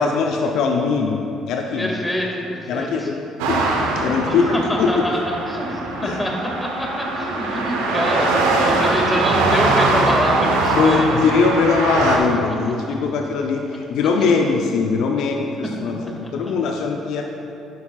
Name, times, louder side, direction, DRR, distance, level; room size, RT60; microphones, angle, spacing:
voice 1, 0.0-1.9 2.7-3.2 3.5-3.6 4.0-5.0 6.0-6.2 8.7-8.8 10.7-17.3, left 5 dB, 65° left, 3 dB, 0.6 m, -21 dB
voice 2, 1.8-3.1 4.2-6.3 6.6-11.3 15.2-15.5 15.8-16.1 16.4-16.7, left 1 dB, 15° left, -1 dB, 2.1 m, -25 dB
sound 1, 3.4-12.2, right 3 dB, 75° right, 0.9 m, -21 dB
11.5 x 9.7 x 2.4 m, 2.7 s
hypercardioid pair, 50°, 0 cm